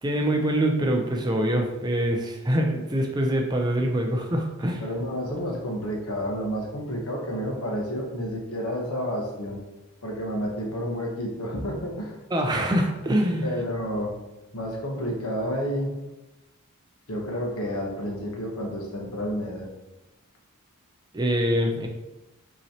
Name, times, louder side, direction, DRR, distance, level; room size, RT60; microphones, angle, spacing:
voice 1, 0.0-4.8 12.3-13.5 21.1-21.9, right 1 dB, 20° right, 2 dB, 0.4 m, -24 dB
voice 2, 4.8-9.6 10.0-12.2 13.4-14.2 14.5-15.9 17.1-19.7, equal, 80° left, 0 dB, 1.0 m, -30 dB
5.5 x 3.0 x 2.8 m, 1.0 s
head